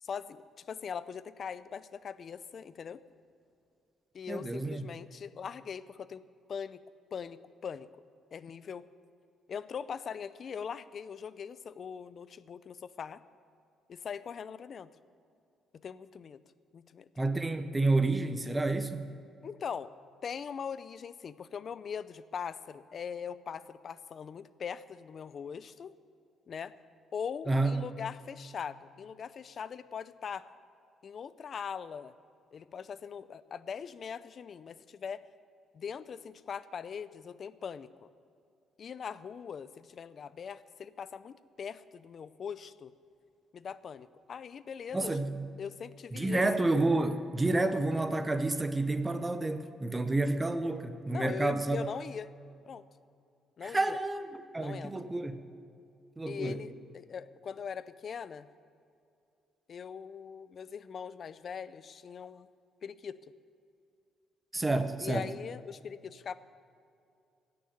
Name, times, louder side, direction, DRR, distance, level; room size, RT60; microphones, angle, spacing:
voice 1, 0.0-3.0 4.1-6.2 6.5-6.8 7.1-7.9 8.3-8.9 9.5-13.2 13.9-14.9 15.7-16.4 16.7-17.1 19.4-19.9 20.2-25.9 26.5-26.8 27.1-30.5 31.0-32.1 32.5-35.3 35.7-38.1 38.8-42.9 43.5-45.2 45.6-46.4 51.1-52.3 52.7-52.8 53.6-54.0 54.6-54.9 56.3-58.5 59.7-62.5 62.8-63.2 65.0-66.3, left 7 dB, 45° left, 16 dB, 0.5 m, -41 dB
voice 2, 4.3-4.8 17.2-19.1 27.5-27.8 44.9-45.5 46.1-51.8 53.6-55.4 56.2-56.6 64.5-65.3, right 2 dB, 15° right, 10 dB, 0.8 m, -30 dB
16.5 x 6.6 x 9.5 m, 2.5 s
cardioid pair, 135°, 0 cm